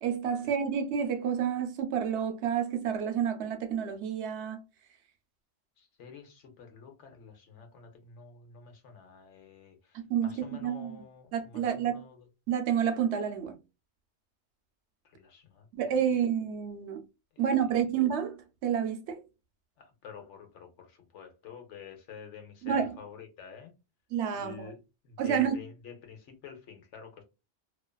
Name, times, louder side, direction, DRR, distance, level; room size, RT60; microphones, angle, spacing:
voice 1, 0.0-4.6 9.9-11.0 11.3-12.0 12.5-13.5 15.7-17.0 17.4-18.4 18.6-19.2 22.6-22.9 24.1-24.7 25.2-25.6, right 8 dB, 75° right, 0.8 m, -29 dB
voice 2, 5.8-12.2 15.1-15.7 17.3-17.4 19.8-23.7 24.3-24.8 25.0-27.2, left 6 dB, 85° left, 1.0 m, -49 dB
2.4 x 2.3 x 2.2 m
omnidirectional pair, 1.2 m